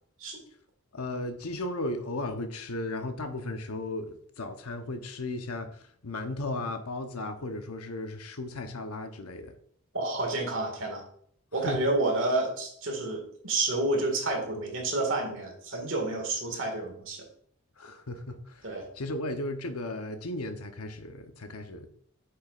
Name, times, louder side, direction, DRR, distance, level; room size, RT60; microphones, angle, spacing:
voice 1, 0.9-9.5 11.7-11.8 17.8-21.9, left 2 dB, 80° left, 7 dB, 0.9 m, -35 dB
voice 2, 9.9-11.0 11.5-17.2 18.6-18.8, right 2 dB, 60° right, 2 dB, 2.0 m, -29 dB
7.8 x 6.8 x 2.5 m, 0.63 s
head